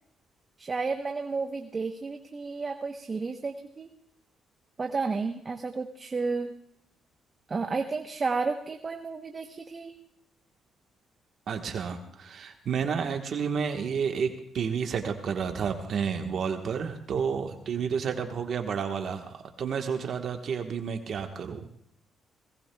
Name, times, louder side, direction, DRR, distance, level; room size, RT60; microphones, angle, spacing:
voice 1, 0.6-3.9 4.8-6.5 7.5-9.9, right 4 dB, 35° right, 5 dB, 0.9 m, -32 dB
voice 2, 11.5-21.8, right 6 dB, 60° right, 4 dB, 1.2 m, -31 dB
24.0 x 18.5 x 2.3 m, 0.72 s
cardioid pair, 90°, 0 cm